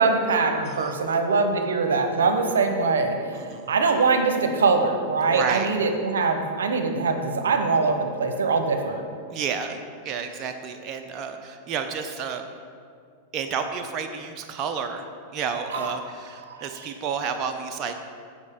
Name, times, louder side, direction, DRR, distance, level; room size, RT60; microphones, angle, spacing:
voice 1, 0.0-9.0 15.7-15.9 16.5-16.9, right 4 dB, 85° right, 6 dB, 0.8 m, -23 dB
voice 2, 3.3-3.7 5.3-5.7 9.3-12.4 13.3-15.0 15.3-18.0, right 6 dB, 40° right, 6 dB, 0.6 m, -31 dB
13.5 x 5.0 x 3.6 m, 2.2 s
hypercardioid pair, 110°, 0 cm